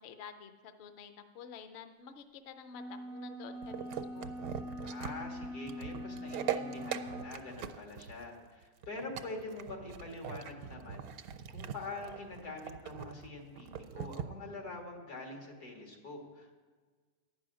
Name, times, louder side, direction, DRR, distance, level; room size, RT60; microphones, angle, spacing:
voice 1, 0.0-3.9 4.1-4.3, left 6 dB, 55° left, 9 dB, 0.8 m, -50 dB
sound 1, 2.7-7.3, left 1 dB, 55° right, 0.6 m, -43 dB
sound 2, 3.6-14.3, right 9 dB, 75° right, 1.1 m, -41 dB
voice 2, 4.8-11.1 11.5-16.5, left 2 dB, 85° left, 1 dB, 2.4 m, -45 dB
10.0 x 6.3 x 8.9 m, 1.4 s
omnidirectional pair, 1.6 m